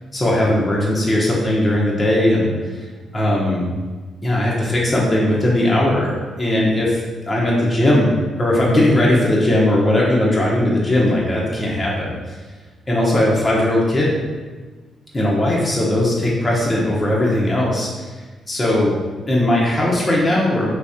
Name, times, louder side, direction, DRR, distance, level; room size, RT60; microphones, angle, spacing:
voice 1, 0.1-2.5 3.1-3.7 4.2-7.0 7.3-12.3 12.9-14.1 15.1-19.0 19.3-20.7, left 1 dB, 30° left, -4 dB, 1.0 m, -18 dB
3.9 x 3.6 x 2.8 m, 1.4 s
supercardioid pair, 50°, 0 cm